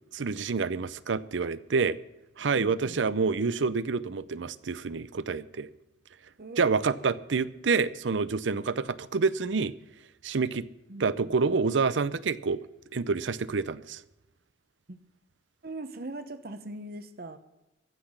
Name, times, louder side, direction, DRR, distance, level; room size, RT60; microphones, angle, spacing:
voice 1, 0.1-2.0 2.4-5.7 6.6-9.7 10.2-10.7 11.0-12.6 12.9-14.0, right 4 dB, 90° right, 0.6 m, -28 dB
voice 2, 2.6-3.0 6.4-7.2 10.9-11.3 14.9-15.0 15.6-17.4, right 2 dB, 55° right, 0.9 m, -41 dB
15.0 x 6.0 x 9.6 m
head